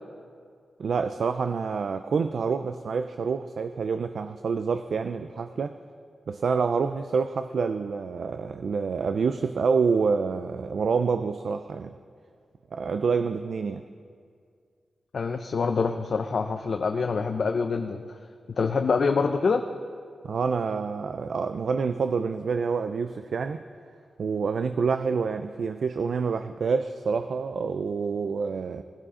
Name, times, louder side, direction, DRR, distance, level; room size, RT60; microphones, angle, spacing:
voice 1, 0.8-5.8 6.3-11.9 12.7-13.8 20.2-23.6 24.2-28.8, right 5 dB, 65° right, 10 dB, 0.4 m, -27 dB
voice 2, 15.1-18.2 18.5-19.6, left 5 dB, 55° left, 6 dB, 0.5 m, -25 dB
19.0 x 12.5 x 3.7 m, 2.1 s
wide cardioid pair, 140°, 0 cm